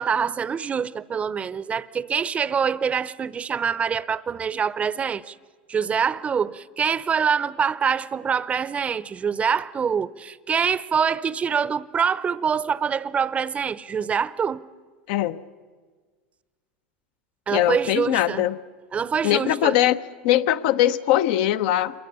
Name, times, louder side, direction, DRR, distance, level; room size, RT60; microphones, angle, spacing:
voice 1, 0.0-5.3 5.7-14.6 17.5-18.5 18.9-19.8, right 7 dB, 25° right, 0.6 m, -25 dB
voice 2, 15.1-15.4 17.5-18.6 19.2-20.0 20.2-22.1, left 13 dB, 65° left, 0.8 m, -21 dB
27.0 x 22.5 x 6.8 m
supercardioid pair, 115°, 6 cm